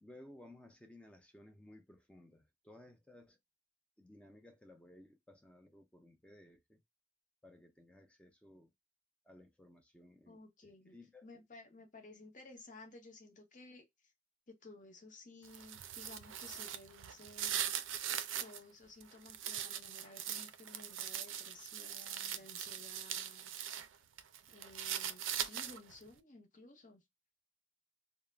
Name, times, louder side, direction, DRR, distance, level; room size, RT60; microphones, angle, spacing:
voice 1, 0.0-3.4 4.0-6.8 7.4-8.7 9.2-11.3, left 1 dB, 5° left, 0.4 m, -58 dB
voice 2, 10.3-11.0 11.2-13.8 14.5-17.6 18.4-23.5 24.5-27.0, left 2 dB, 40° left, 0.8 m, -56 dB
sound 1, 15.4-18.6 19.0-23.9 24.2-26.0, right 10 dB, 80° right, 0.4 m, -41 dB
2.3 x 2.0 x 3.2 m
head